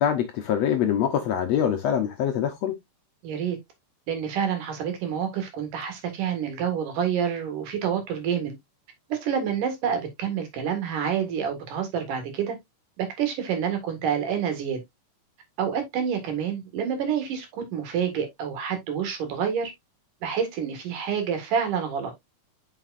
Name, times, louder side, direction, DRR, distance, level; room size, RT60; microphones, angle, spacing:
voice 1, 0.0-2.8, left 9 dB, 70° left, 1.7 m, -24 dB
voice 2, 3.2-3.6 4.1-8.5 9.1-12.6 13.0-14.8 15.6-19.7 20.2-22.1, right 8 dB, 75° right, 3.4 m, -28 dB
7.6 x 5.7 x 2.5 m
omnidirectional pair, 3.7 m